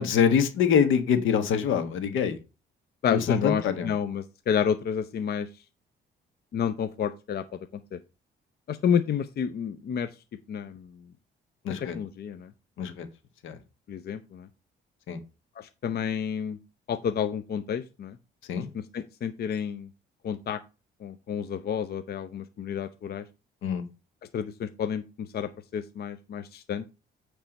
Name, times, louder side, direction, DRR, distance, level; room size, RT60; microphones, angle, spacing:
voice 1, 0.0-2.4 3.1-3.9 11.6-12.0 12.8-13.1 13.4-13.6 15.1-15.2 18.5-18.7 23.6-23.8, left 7 dB, 85° left, 9 dB, 1.3 m, -24 dB
voice 2, 3.0-5.5 6.5-7.4 7.9-8.0 8.7-10.1 10.5-10.9 11.9-12.5 13.9-14.5 15.6-16.6 16.9-18.2 18.7-19.9 20.2-20.6 21.0-23.2 24.3-26.9, left 8 dB, 55° left, 10 dB, 0.6 m, -30 dB
8.8 x 3.4 x 5.3 m, 0.30 s
cardioid pair, 90°, 20 cm